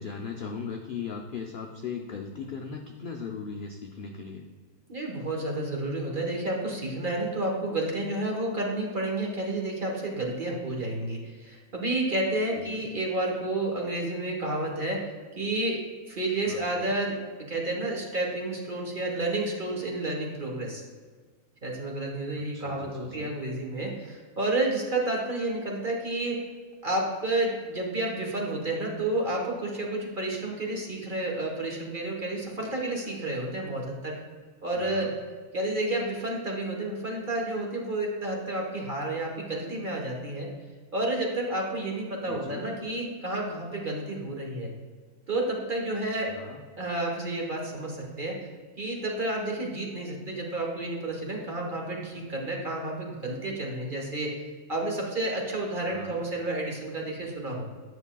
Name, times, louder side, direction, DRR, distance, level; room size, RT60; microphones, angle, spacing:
voice 1, 0.0-4.5 12.5-12.9 16.5-16.9 22.4-23.3 34.7-35.1 42.2-42.7 46.3-46.6 55.9-56.2, left 5 dB, 60° left, 1 dB, 0.5 m, -38 dB
voice 2, 4.9-15.0 15.3-15.8 16.1-20.8 21.6-26.5 26.8-34.2 34.6-35.1 35.5-40.5 40.9-44.7 45.3-46.3 46.8-48.5 48.8-54.3 54.7-57.6, right 2 dB, 40° right, 0 dB, 1.2 m, -30 dB
9.6 x 6.3 x 2.3 m, 1.5 s
omnidirectional pair, 1.5 m